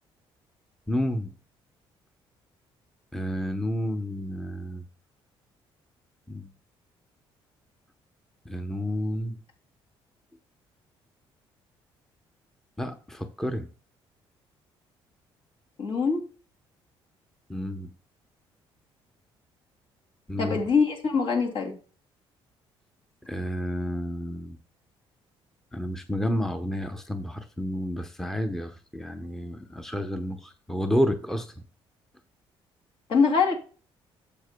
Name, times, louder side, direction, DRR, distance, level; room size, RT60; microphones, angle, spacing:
voice 1, 0.9-1.3 3.1-4.8 6.3-6.5 8.5-9.4 12.8-13.7 17.5-17.9 20.3-20.6 23.3-24.6 25.7-31.5, equal, 5° left, 0.7 m, -30 dB
voice 2, 15.8-16.3 20.4-21.7 33.1-33.6, left 5 dB, 65° left, 2.6 m, -23 dB
11.5 x 7.5 x 2.2 m
cardioid pair, 125°, 10 cm